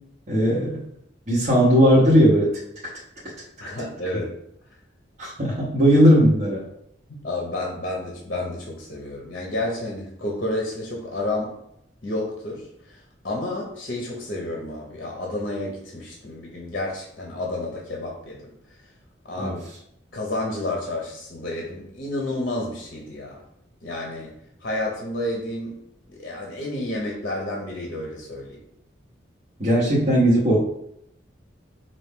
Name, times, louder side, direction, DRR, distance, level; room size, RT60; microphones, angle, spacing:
voice 1, 0.3-0.8 1.3-2.6 5.2-6.6 19.4-19.6 29.6-30.6, equal, 40° right, -7 dB, 1.0 m, -17 dB
voice 2, 3.6-4.3 7.2-11.5 12.0-18.4 19.2-19.7 20.1-23.4 23.8-24.3 24.6-25.8 26.1-28.6, left 1 dB, 50° left, -1 dB, 0.8 m, -30 dB
4.5 x 2.6 x 3.5 m, 0.75 s
head